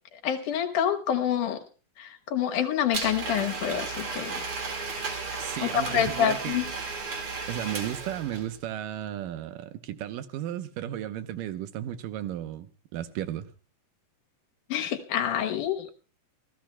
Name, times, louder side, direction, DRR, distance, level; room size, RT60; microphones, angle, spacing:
voice 1, 0.2-1.6 2.0-4.4 5.6-6.6 14.7-15.9, left 9 dB, 75° left, 2.5 m, -27 dB
Domestic sounds home sounds, 2.9-8.6, right 4 dB, 45° right, 2.7 m, -34 dB
voice 2, 5.4-6.6 7.5-13.5, right 11 dB, 90° right, 2.5 m, -34 dB
27.5 x 15.5 x 2.3 m
omnidirectional pair, 3.8 m